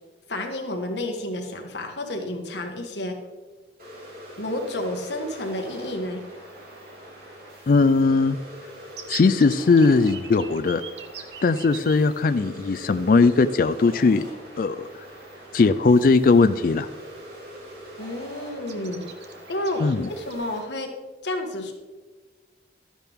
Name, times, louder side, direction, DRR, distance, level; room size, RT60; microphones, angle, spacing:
voice 1, 0.3-3.2 4.4-6.2 18.0-19.0 19.5-20.9 21.2-21.7, left 1 dB, 70° left, 3 dB, 1.6 m, -30 dB
sound 1, 3.8-20.6, right 1 dB, 50° right, 3.6 m, -43 dB
voice 2, 7.7-8.4 9.1-10.8 11.4-14.3 14.6-14.9 15.5-16.9 19.8-20.1, left 4 dB, 50° left, 11 dB, 0.4 m, -19 dB
sound 2, 8.9-11.9 12.9-13.0 13.3-13.5 15.1-15.3 15.7-16.0 16.4-17.1 17.4-17.6 17.8-18.3 18.7-20.3, right 7 dB, 70° right, 1.1 m, -40 dB
12.5 x 10.0 x 3.6 m, 1.3 s
head